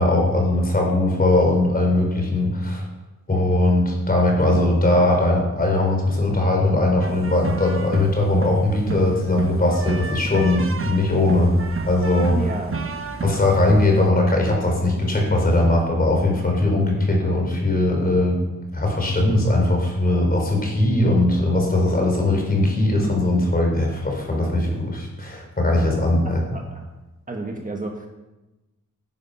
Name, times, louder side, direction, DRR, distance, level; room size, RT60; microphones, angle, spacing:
voice 1, 0.0-2.8 3.3-11.6 11.8-12.4 13.2-18.4 18.7-26.4, left 2 dB, 30° left, 1 dB, 4.0 m, -20 dB
sound 1, 7.0-14.1, right 4 dB, 45° right, 1.2 m, -31 dB
voice 2, 12.3-12.7 26.2-26.9 27.3-28.1, right 2 dB, 25° right, 1 dB, 1.6 m, -31 dB
16.0 x 10.5 x 5.7 m, 1.1 s
wide cardioid pair, 165°, 31 cm